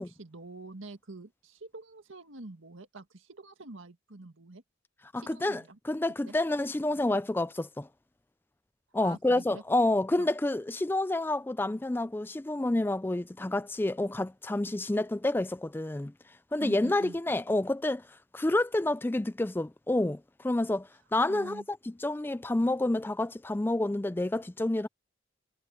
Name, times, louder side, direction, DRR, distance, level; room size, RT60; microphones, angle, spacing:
voice 1, 0.0-4.6 5.2-5.8 6.3-6.4 9.0-9.6 10.2-10.3 16.6-17.2 21.3-21.6, right 2 dB, 80° right, 1.8 m, -46 dB
voice 2, 5.1-7.9 8.9-16.1 16.5-18.1 18.3-24.9, left 2 dB, 10° left, 0.3 m, -29 dB
head